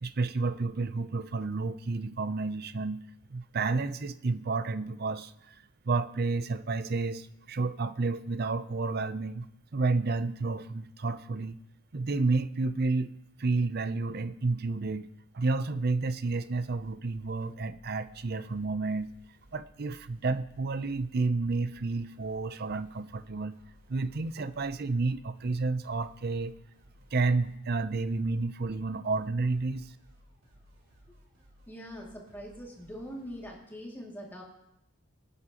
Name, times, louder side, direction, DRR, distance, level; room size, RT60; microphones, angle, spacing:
voice 1, 0.0-3.0 3.3-5.6 5.8-9.5 9.7-11.6 11.9-13.1 13.4-15.1 15.3-19.1 19.5-23.6 23.9-26.6 27.1-29.9, right 3 dB, 45° right, 13 dB, 0.6 m, -30 dB
sound 1, 16.5-33.6, equal, 60° right, 3.4 m, -60 dB
voice 2, 31.7-34.4, equal, 10° left, -2 dB, 2.4 m, -43 dB
23.5 x 9.6 x 3.0 m, 0.84 s
head